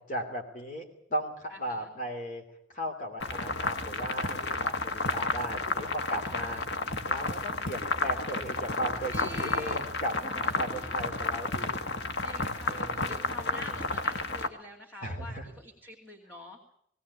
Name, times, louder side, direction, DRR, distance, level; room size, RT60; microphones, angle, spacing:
voice 1, 0.0-2.4 2.7-6.6 7.0-11.8 12.7-13.8 15.0-15.5, equal, 45° left, 3 dB, 3.1 m, -37 dB
voice 2, 1.5-1.9 3.2-3.8 6.1-6.6 9.1-9.9 10.4-11.2 12.2-16.6, equal, 10° left, -3 dB, 2.7 m, -47 dB
sound 1, 3.2-14.5, left 3 dB, 70° left, 1.6 m, -32 dB
19.0 x 18.0 x 8.5 m, 0.69 s
head